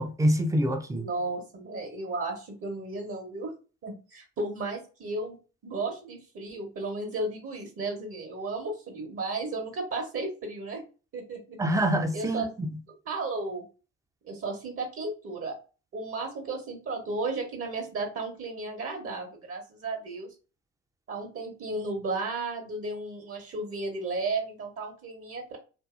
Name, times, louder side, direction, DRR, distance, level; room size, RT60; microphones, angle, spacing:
voice 1, 0.0-1.0 11.6-12.7, equal, 10° right, 0.5 m, -26 dB
voice 2, 0.9-3.5 3.8-5.4 5.6-10.8 11.1-11.6 12.1-12.5 13.0-13.6 14.2-15.5 15.9-20.3 21.1-25.6, right 3 dB, 40° right, 0.9 m, -34 dB
2.7 x 2.6 x 2.3 m
hypercardioid pair, 60°, 34 cm